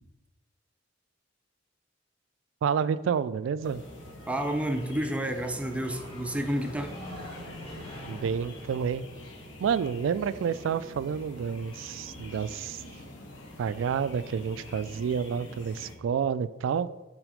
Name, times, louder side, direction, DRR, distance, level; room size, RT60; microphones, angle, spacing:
voice 1, 2.6-3.8 8.1-9.0 9.6-12.8 13.6-16.9, right 7 dB, 90° right, 16 dB, 0.3 m, -29 dB
sound 1, 3.6-16.0, left 1 dB, 70° left, 1.0 m, -46 dB
sound 2, 3.6-14.6, equal, 30° left, 1.7 m, -48 dB
voice 2, 4.3-7.0, right 1 dB, 5° right, 4 dB, 0.5 m, -30 dB
6.1 x 4.2 x 5.0 m, 1.1 s
head